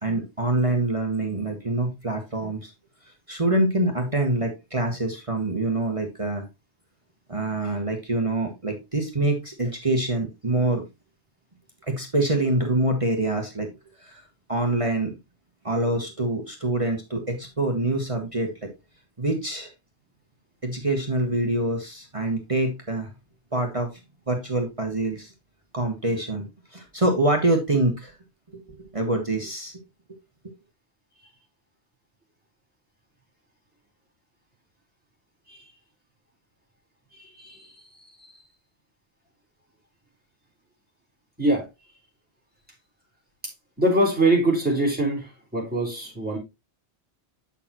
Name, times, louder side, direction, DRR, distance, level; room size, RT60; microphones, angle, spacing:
voice 1, 0.0-2.7 3.3-6.4 7.3-10.8 11.9-13.7 14.0-14.2 14.5-15.2 15.6-18.7 19.2-19.7 20.6-23.1 23.5-23.9 24.3-25.3 25.7-26.5 26.7-28.1 28.9-29.8, right 2 dB, 30° right, 2 dB, 1.4 m, -25 dB
voice 2, 37.1-37.7 38.2-38.3 41.4-41.7 43.8-46.4, right 1 dB, 10° right, -3 dB, 3.9 m, -24 dB
8.4 x 6.8 x 2.9 m, 0.23 s
omnidirectional pair, 1.2 m